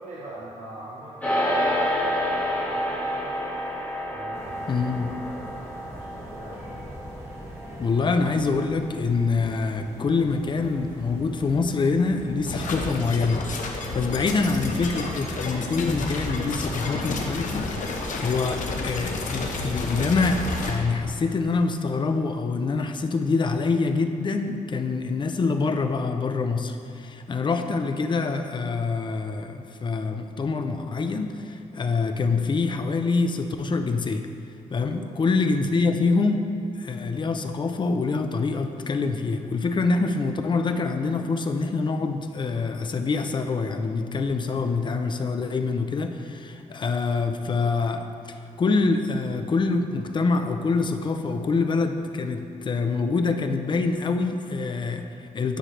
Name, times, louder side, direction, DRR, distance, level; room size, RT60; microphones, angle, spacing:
voice 1, 0.0-3.5 4.1-6.9 34.9-35.1, right 2 dB, 60° right, -7 dB, 1.2 m, -43 dB
sound 1, 1.2-10.7, equal, 10° left, 1.7 m, -30 dB
sound 2, 4.3-14.7, equal, 20° right, 1.4 m, -43 dB
voice 2, 4.7-5.1 7.8-17.7 18.2-34.3 34.7-36.5 36.8-55.6, left 4 dB, 35° left, 7 dB, 0.5 m, -25 dB
sound 3, 12.4-20.7, left 2 dB, 70° left, 0.9 m, -30 dB
10.0 x 6.3 x 3.3 m, 2.6 s
wide cardioid pair, 120°, 14 cm